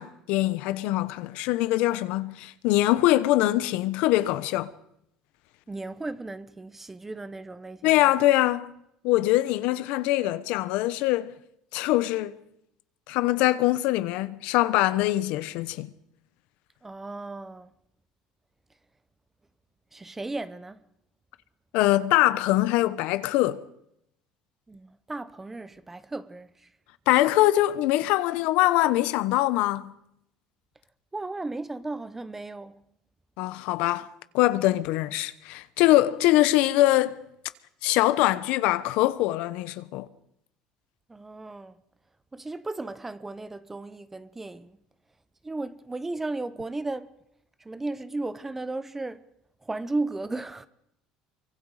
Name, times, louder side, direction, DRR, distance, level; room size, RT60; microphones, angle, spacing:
voice 1, 0.0-4.7 7.8-8.7 9.0-11.3 11.7-12.4 13.1-15.9 21.7-23.6 27.1-29.9 33.4-34.1 34.3-37.2 37.8-40.1, left 16 dB, 75° left, 1.0 m, -23 dB
voice 2, 5.7-8.1 16.8-17.7 19.9-20.8 24.7-26.7 31.1-32.8 41.1-41.7 42.3-44.8 45.4-47.1 47.6-49.2 49.6-50.7, right 2 dB, 15° right, 0.9 m, -35 dB
25.0 x 23.5 x 5.0 m
cardioid pair, 120°, 2 cm